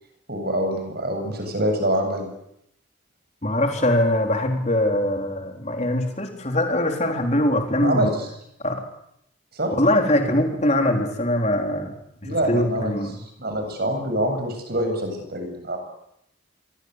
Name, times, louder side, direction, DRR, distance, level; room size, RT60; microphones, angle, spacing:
voice 1, 0.3-2.3 7.8-8.3 9.5-9.7 12.2-15.8, right 1 dB, 50° right, 5 dB, 7.9 m, -25 dB
voice 2, 3.4-8.1 8.6-8.8 9.8-11.9 12.2-13.2, left 1 dB, 35° left, 4 dB, 4.0 m, -22 dB
27.0 x 23.5 x 8.3 m, 0.77 s
head